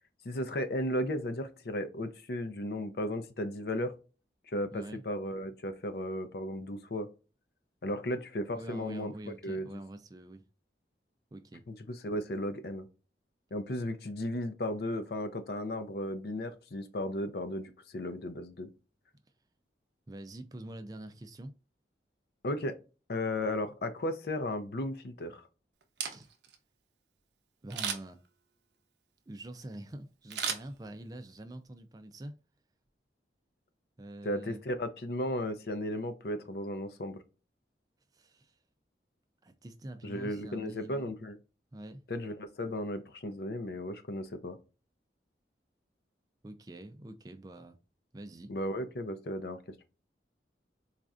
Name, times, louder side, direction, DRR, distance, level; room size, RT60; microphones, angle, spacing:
voice 1, 0.2-3.9 4.5-7.1 7.8-9.1 9.4-9.8 11.7-12.9 13.5-18.7 22.4-22.8 23.1-25.4 34.2-37.2 40.0-41.4 42.1-44.6 48.5-49.6, left 1 dB, 60° left, 0.5 m, -35 dB
voice 2, 4.7-5.0 8.5-10.4 11.3-11.7 20.1-21.6 26.1-26.3 27.6-28.2 29.3-32.4 34.0-34.6 38.1-38.6 39.4-41.1 41.7-42.0 46.4-47.8 48.1-48.5, right 1 dB, 20° right, 0.3 m, -45 dB
Camera, 25.8-26.6 27.7-28.3 30.3-31.2 31.7-31.8, right 7 dB, 75° right, 0.7 m, -36 dB
4.2 x 2.4 x 2.3 m
head